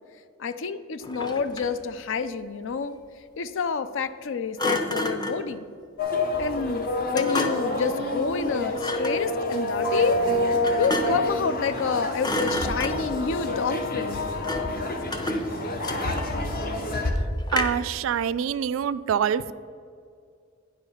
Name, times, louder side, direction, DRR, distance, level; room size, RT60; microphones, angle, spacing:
voice 1, 0.4-3.0 3.4-5.7 6.4-6.9 7.1-10.2 10.8-14.2, left 5 dB, 65° left, 13 dB, 0.5 m, -28 dB
Thump thud, 1.0-1.8 4.6-5.5 7.1-7.8 8.8-9.2 10.6-11.3 11.7-11.9 12.2-13.2 14.4-14.8 15.1-16.5 17.5-17.9, left 1 dB, 20° left, 0.7 m, -30 dB
sound 1, 6.0-17.1, left 1 dB, 50° left, 0.9 m, -28 dB
voice 2, 17.5-19.5, right 8 dB, 70° right, 15 dB, 0.3 m, -25 dB
9.7 x 4.9 x 5.5 m, 2.3 s
head